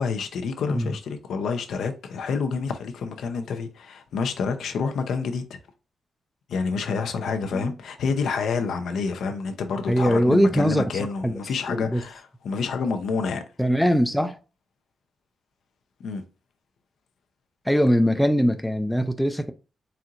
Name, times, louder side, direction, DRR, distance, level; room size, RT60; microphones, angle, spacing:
voice 1, 0.0-5.6 6.5-13.4 16.0-16.2, left 5 dB, 80° left, 0.6 m, -28 dB
voice 2, 9.9-11.3 11.7-12.0 13.6-14.4 17.7-19.5, equal, ahead, 0.3 m, -22 dB
4.3 x 3.8 x 2.5 m
wide cardioid pair, 160°, 0 cm